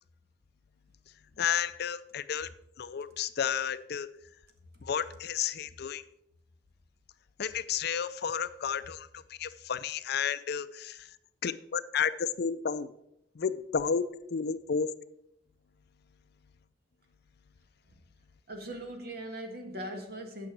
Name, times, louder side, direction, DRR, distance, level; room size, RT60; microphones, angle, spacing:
voice 1, 1.4-2.5 2.8-4.1 4.8-6.0 7.4-11.1 11.4-12.9 13.4-14.9, left 7 dB, 60° left, 14 dB, 0.5 m, -32 dB
voice 2, 18.5-20.5, right 1 dB, 55° right, 4 dB, 1.6 m, -40 dB
9.2 x 6.0 x 6.0 m, 0.80 s
head